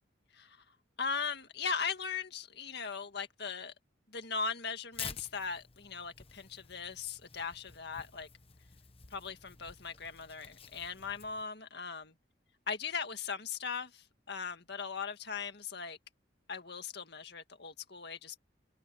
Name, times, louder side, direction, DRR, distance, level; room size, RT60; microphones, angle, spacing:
voice 1, 0.3-0.6 1.0-3.7 4.1-8.3 9.1-12.1 12.7-16.0 16.5-18.4, left 5 dB, 55° left, 2.0 m, -39 dB
Tearing, 4.9-11.4, left 7 dB, 30° left, 1.2 m, -50 dB
open air
head